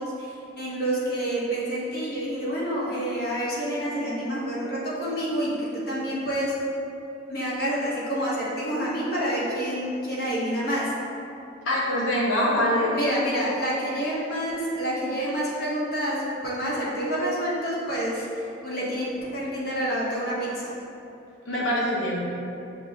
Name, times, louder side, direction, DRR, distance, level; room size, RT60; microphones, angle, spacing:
voice 1, 0.0-6.5 7.3-10.9 12.9-20.7, equal, 50° left, -7 dB, 1.0 m, -28 dB
voice 2, 11.7-12.9 21.5-22.3, left 1 dB, 80° left, -5 dB, 0.7 m, -24 dB
6.4 x 2.2 x 3.4 m, 2.8 s
head